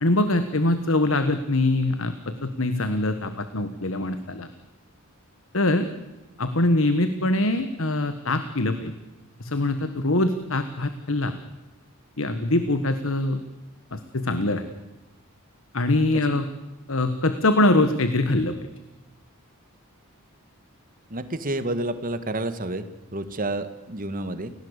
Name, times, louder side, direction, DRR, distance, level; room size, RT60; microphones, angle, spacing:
voice 1, 0.0-4.5 5.5-5.9 6.4-8.9 9.4-11.4 12.2-13.4 13.9-14.6 15.7-16.4 16.9-18.5, left 2 dB, 65° left, 10 dB, 1.5 m, -23 dB
voice 2, 21.1-22.8 23.1-24.5, right 2 dB, 40° right, 11 dB, 1.8 m, -29 dB
29.5 x 17.0 x 8.2 m, 1.1 s
head